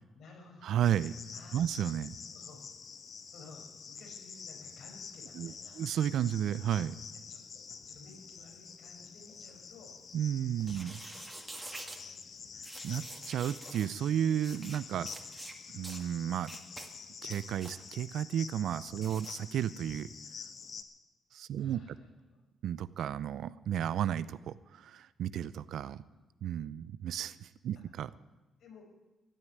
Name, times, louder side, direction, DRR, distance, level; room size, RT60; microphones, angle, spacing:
voice 1, 0.1-0.7 1.3-1.8 2.2-2.7 3.3-5.9 7.1-10.0 10.8-12.5 19.0-19.2 21.6-22.4 26.0-26.3 28.6-28.8, left 3 dB, 70° left, 1 dB, 5.2 m, -56 dB
voice 2, 0.6-1.2 1.5-2.2 5.4-7.0 10.1-10.9 12.8-15.1 15.7-16.5 17.2-20.1 21.3-22.0 22.6-26.0 26.4-28.1, right 10 dB, 75° right, 17 dB, 0.6 m, -33 dB
Cricket, 0.8-20.8, left 6 dB, 55° left, 1.4 m, -48 dB
sound 1, 10.6-12.0 12.6-13.9 14.4-14.8 15.1-15.5 15.8-16.0 16.4-16.9 17.2-17.8 19.0-19.3, right 2 dB, 15° right, 2.1 m, -46 dB
14.5 x 9.9 x 9.6 m, 1.1 s
cardioid pair, 90°, 0 cm